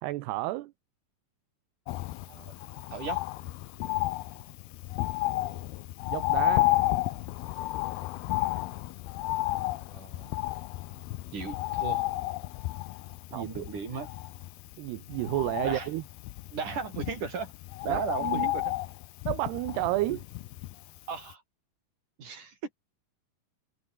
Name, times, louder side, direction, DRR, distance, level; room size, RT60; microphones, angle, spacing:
voice 1, 0.0-0.7 6.1-6.7 13.3-13.7 14.8-16.0 17.9-18.5 19.3-20.2, right 18 dB, 80° right, 2.9 m, -31 dB
Bird, 1.9-21.0 21.3-21.4, left 18 dB, 75° left, 2.5 m, -32 dB
voice 2, 9.9-10.4 11.3-12.1 13.3-14.1 15.6-15.9 16.5-17.5 17.8-18.7 20.1-20.2 21.1-21.4 22.2-22.7, right 5 dB, 50° right, 6.4 m, -36 dB
omnidirectional pair, 4.8 m